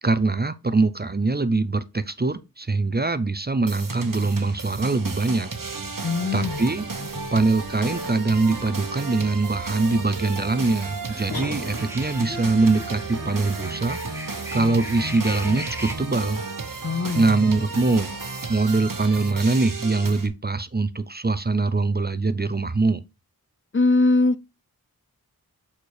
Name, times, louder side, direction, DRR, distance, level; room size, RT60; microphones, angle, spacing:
voice 1, 0.0-5.5 6.3-6.9 7.3-16.4 17.1-18.1 18.5-23.0, right 3 dB, 25° right, 0.5 m, -23 dB
sound 1, 3.7-20.3, right 3 dB, 60° right, 1.1 m, -33 dB
voice 2, 6.0-6.7 7.2-7.3 16.8-17.3 23.7-24.4, left 3 dB, 35° left, 0.4 m, -22 dB
sound 2, 6.2-16.0, equal, 5° right, 1.0 m, -41 dB
sound 3, 11.3-12.2, left 2 dB, 80° left, 1.5 m, -34 dB
6.5 x 4.3 x 4.7 m
wide cardioid pair, 45°, 36 cm